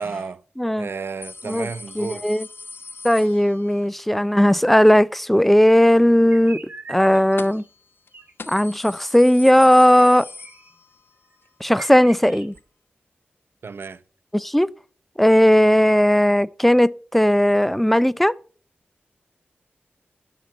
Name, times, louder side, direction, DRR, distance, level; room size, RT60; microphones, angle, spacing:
voice 1, 0.0-0.4 0.8-2.3 13.6-14.0, right 5 dB, 70° right, 0.8 m, -32 dB
voice 2, 0.6-0.9 1.5-1.7 2.0-2.4 3.0-6.6 6.9-7.6 8.5-10.3 11.6-12.5 14.3-14.7 15.2-18.4, equal, 5° left, 0.5 m, -16 dB
sound 1, 1.2-3.9 7.4-7.8 8.1-8.2 8.4-11.1 11.5-11.6 12.6-12.7, left 3 dB, 65° left, 1.0 m, -40 dB
sound 2, 6.3-7.7 8.1-8.3 9.9-10.7 11.3-11.4 11.7-12.6, right 3 dB, 45° right, 3.6 m, -42 dB
12.0 x 6.0 x 7.4 m
cardioid pair, 50°, 4 cm